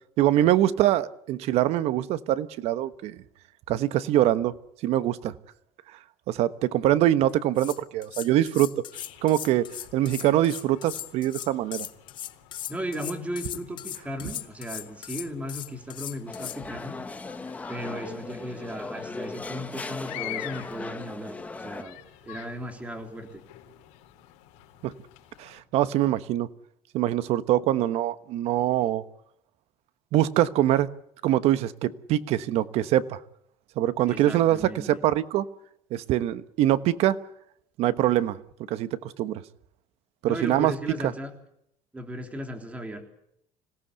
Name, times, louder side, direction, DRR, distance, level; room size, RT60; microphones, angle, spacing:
voice 1, 0.2-3.2 3.7-4.6 4.8-5.3 6.3-8.7 9.2-11.9 24.8-24.9 25.4-26.5 26.9-29.0 30.1-30.9 31.2-33.2 33.8-35.4 35.9-37.2 37.8-38.4 38.7-39.4 40.2-40.7, right 13 dB, 60° right, 14 dB, 1.2 m, -24 dB
sound 1, 7.3-7.4 7.6-16.6, left 11 dB, 40° left, 1.0 m, -38 dB
sound 2, 8.9-25.6, left 16 dB, 80° left, 4.1 m, -47 dB
voice 2, 12.7-17.0 17.7-22.0 22.2-23.4 34.0-34.9 40.2-41.3 41.9-43.0, equal, 10° right, 5 dB, 3.6 m, -36 dB
sound 3, 16.3-21.8, left 3 dB, 10° left, 1.2 m, -38 dB
26.0 x 17.5 x 8.2 m, 0.74 s
cardioid pair, 155°, 12 cm